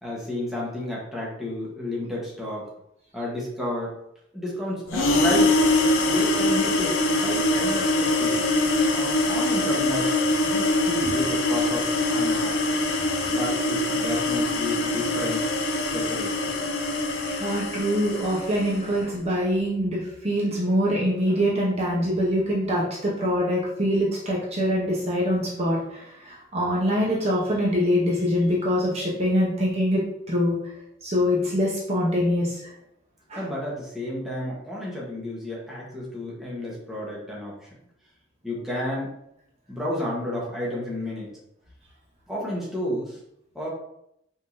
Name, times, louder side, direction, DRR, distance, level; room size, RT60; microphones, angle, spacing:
voice 1, 0.0-2.7 3.1-3.9 4.3-5.5 6.0-8.4 8.9-10.1 10.4-12.6 13.3-15.4 15.9-16.5 33.4-37.7 38.4-39.1 39.7-41.3 42.3-43.2 43.5-43.7, left 1 dB, ahead, -6 dB, 1.3 m, -31 dB
sound 1, 4.9-18.8, left 2 dB, 90° left, 0.7 m, -23 dB
voice 2, 17.2-30.0 30.3-30.6 31.0-32.7 33.3-33.5, equal, 35° right, -4 dB, 0.9 m, -24 dB
5.3 x 3.7 x 2.7 m, 0.77 s
head